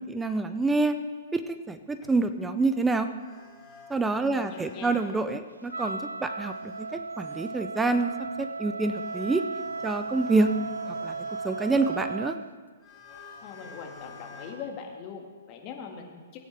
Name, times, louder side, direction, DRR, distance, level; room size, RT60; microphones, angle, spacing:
voice 1, 0.1-0.9 1.3-3.1 3.9-8.1 8.4-9.4 9.8-10.5 11.0-11.1 11.4-12.4, right 3 dB, 10° right, 9 dB, 0.5 m, -27 dB
sound 1, 1.7-2.1 2.5-2.6 3.2-3.9 4.3-5.2 6.4-7.5 8.2-8.3 8.7-12.2 12.8-14.5, left 2 dB, 10° left, 3.7 m, -49 dB
voice 2, 4.3-5.0 13.4-16.4, left 6 dB, 35° left, 2 dB, 1.8 m, -41 dB
Wind instrument woodwind instrument, 5.7-12.5, right 4 dB, 80° right, 0.3 m, -35 dB
16.5 x 9.1 x 3.3 m, 1.5 s
figure-of-eight pair, 120°, 0 cm